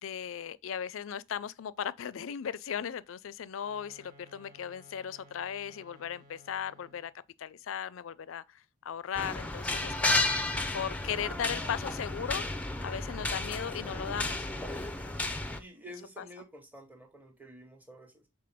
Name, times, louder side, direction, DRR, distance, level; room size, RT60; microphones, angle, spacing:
voice 1, 0.0-7.1 7.4-10.2 10.7-12.5 12.8-14.5 16.2-16.3, left 8 dB, 75° left, 0.4 m, -37 dB
sound 1, 3.5-7.2, left 1 dB, 45° right, 1.6 m, -58 dB
sound 2, 9.1-15.6, left 2 dB, 5° left, 0.5 m, -32 dB
voice 2, 15.6-18.3, equal, 10° right, 1.1 m, -50 dB
6.7 x 4.0 x 3.5 m
head